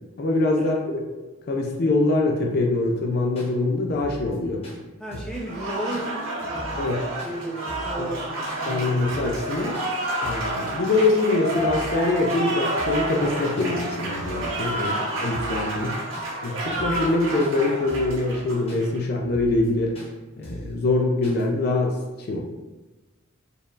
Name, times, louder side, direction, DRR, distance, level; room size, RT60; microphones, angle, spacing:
voice 1, 0.2-1.0 1.5-4.6 6.8-7.0 8.0-8.1 8.7-9.8 10.2-15.9 16.4-19.9 20.4-22.4, left 2 dB, 50° left, 1 dB, 0.4 m, -24 dB
sound 1, 2.8-2.9 3.3-3.5 3.8-4.4 4.6-4.8 5.1-5.4 5.9-6.1 6.4-6.9 7.2-7.3 7.7-8.0 8.5-8.6 8.9-9.5 9.7-9.9 10.2-10.5 11.0-11.2 11.5-12.0 12.3-12.4 12.8-13.1 13.6-13.7 14.0-14.6 14.8-15.0 15.3-15.6 16.1-16.3 16.6-17.1 17.4-17.5 17.9-18.2 18.7-18.8 19.1-19.7 19.9-20.1 20.4-20.7 21.2-21.4, equal, 30° left, 0.9 m, -40 dB
voice 2, 5.0-9.0 14.8-15.1, right 1 dB, 5° left, -4 dB, 0.6 m, -35 dB
Applause, 5.3-19.0, right 1 dB, 65° right, 1.3 m, -29 dB
4.4 x 3.4 x 2.4 m, 1.2 s
head